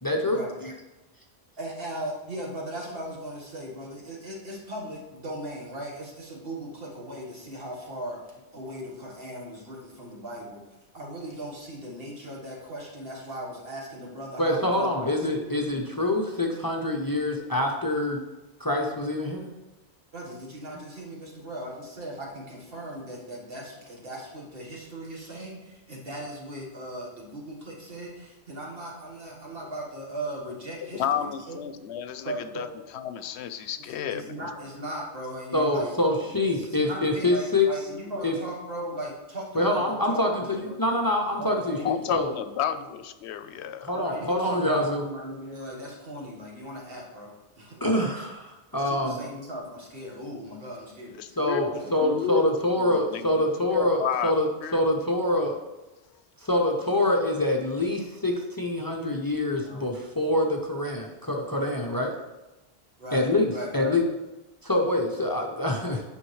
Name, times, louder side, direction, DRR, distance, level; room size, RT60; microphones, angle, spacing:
voice 1, 0.0-0.7 14.4-18.2 18.6-19.5 35.5-37.7 38.2-38.4 39.5-42.3 43.8-45.0 47.8-48.4 48.7-49.2 51.4-54.5 54.7-55.6 56.4-62.1 63.1-64.0 64.6-66.0, left 1 dB, 25° left, 1 dB, 0.6 m, -25 dB
voice 2, 1.6-8.2 8.5-10.6 10.9-15.2 20.1-31.6 32.2-32.7 34.1-40.7 41.3-41.9 42.7-42.8 43.9-48.3 48.7-51.1 51.7-51.9 59.5-59.9 63.0-64.0, right 1 dB, 65° right, -2 dB, 1.7 m, -38 dB
voice 3, 30.9-32.7 32.9-34.5 36.8-36.9 38.1-38.2 41.8-43.9 51.5-51.6 52.0-52.5 52.8-54.3 54.6-54.8, left 9 dB, 85° left, 11 dB, 0.8 m, -31 dB
9.2 x 5.3 x 3.2 m, 1.1 s
omnidirectional pair, 1.1 m